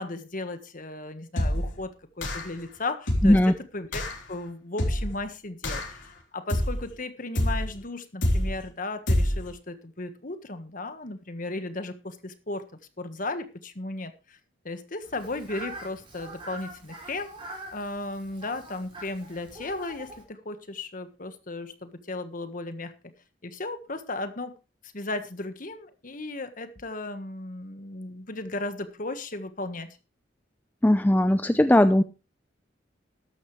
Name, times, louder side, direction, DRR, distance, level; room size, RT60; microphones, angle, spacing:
voice 1, 0.0-6.0 6.3-12.6 13.0-14.4 14.6-17.3 17.7-22.9 23.4-24.5 24.9-29.9, left 2 dB, 45° left, 9 dB, 1.4 m, -35 dB
sound 1, 1.4-1.8 2.2-2.6 3.1-3.5 3.9-4.2 4.8-5.2 5.6-6.0 6.5-6.9 7.4-7.8 8.2-8.6 9.1-9.5, left 1 dB, 80° left, 3.5 m, -26 dB
voice 2, 3.2-3.5 30.8-32.0, left 1 dB, 10° left, 10 dB, 0.5 m, -19 dB
Fowl, 15.0-20.2, right 1 dB, 30° right, 5.4 m, -44 dB
13.5 x 11.5 x 3.2 m, 0.30 s
head